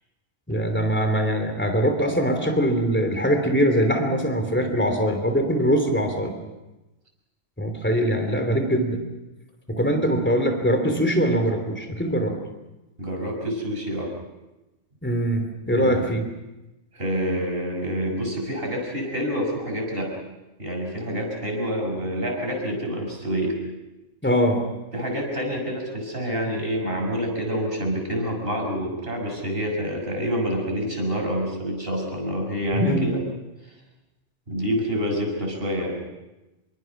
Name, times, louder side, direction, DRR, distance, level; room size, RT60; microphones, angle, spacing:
voice 1, 0.5-6.3 7.6-9.0 9.7-12.3 15.0-16.2 24.2-24.6 32.7-33.2, equal, 10° left, 5 dB, 3.0 m, -22 dB
voice 2, 13.0-14.1 15.7-16.0 16.9-20.1 20.6-23.6 24.9-33.2 34.5-36.0, equal, 50° right, 0 dB, 6.5 m, -27 dB
26.5 x 23.5 x 6.1 m, 1.0 s
omnidirectional pair, 1.3 m